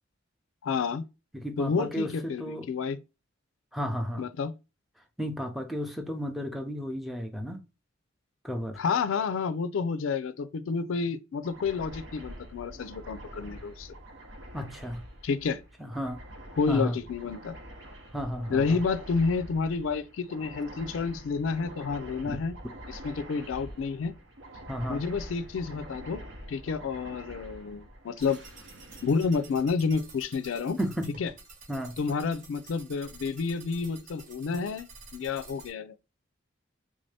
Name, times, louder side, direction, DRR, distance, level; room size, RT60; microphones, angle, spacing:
voice 1, 0.6-1.1 1.6-3.0 4.2-4.5 8.8-14.0 15.2-15.6 16.6-17.6 18.5-22.5 22.9-24.1 24.9-26.2 26.5-28.4 29.0-30.8 31.2-31.3 32.0-36.0, left 5 dB, 85° left, 0.4 m, -30 dB
voice 2, 1.3-2.7 3.7-4.2 5.2-7.6 8.4-8.8 14.5-15.0 15.8-16.2 16.7-17.0 18.1-18.8 22.2-22.4 24.7-25.0 30.8-31.1 31.7-32.0, equal, ahead, 0.5 m, -33 dB
sound 1, 11.4-30.3, right 1 dB, 70° right, 0.9 m, -46 dB
sound 2, 28.2-35.7, right 3 dB, 45° right, 1.0 m, -50 dB
3.5 x 2.7 x 3.2 m
head